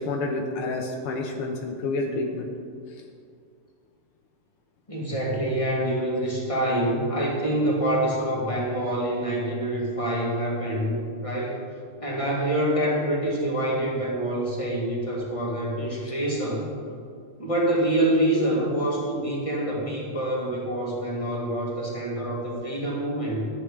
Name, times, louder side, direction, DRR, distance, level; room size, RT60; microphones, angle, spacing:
voice 1, 0.0-2.5, left 2 dB, 85° left, 1 dB, 1.8 m, -29 dB
voice 2, 4.9-11.6 12.0-16.7 17.4-23.5, right 1 dB, 15° left, -4 dB, 2.0 m, -26 dB
11.0 x 8.3 x 4.9 m, 2.3 s
omnidirectional pair, 2.4 m